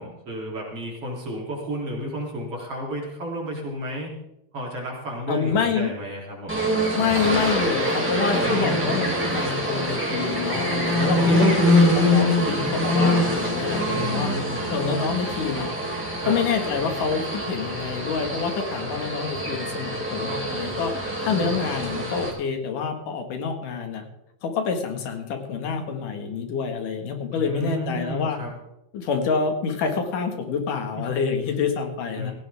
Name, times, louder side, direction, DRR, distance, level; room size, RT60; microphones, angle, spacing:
voice 1, 0.0-4.1 4.5-6.6 8.4-9.0 10.9-11.4 13.9-14.7 16.2-16.4 21.2-21.6 27.3-28.5 32.2-32.3, equal, 45° right, -3 dB, 4.2 m, -32 dB
voice 2, 5.3-6.0 6.9-14.3 14.7-15.7 16.3-20.9 21.2-24.0 24.4-28.4 28.9-32.3, left 5 dB, 75° left, 5 dB, 3.3 m, -27 dB
sound 1, 6.5-22.3, left 1 dB, 5° right, 3.6 m, -24 dB
17.0 x 16.0 x 3.6 m, 0.85 s
omnidirectional pair, 3.8 m